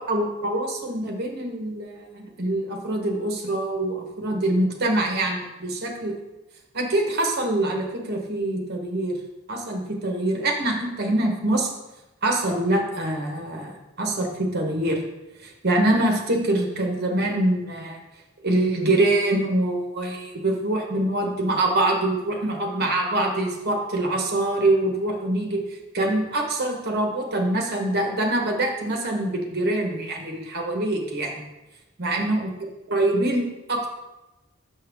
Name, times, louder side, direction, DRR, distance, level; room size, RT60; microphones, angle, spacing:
voice 1, 0.1-6.1 6.7-9.2 9.5-11.7 12.2-15.0 15.4-18.0 18.4-25.6 25.9-31.4 32.0-32.5 32.9-33.9, right 1 dB, 50° right, 2 dB, 1.1 m, -24 dB
5.8 x 5.6 x 3.5 m, 1.0 s
head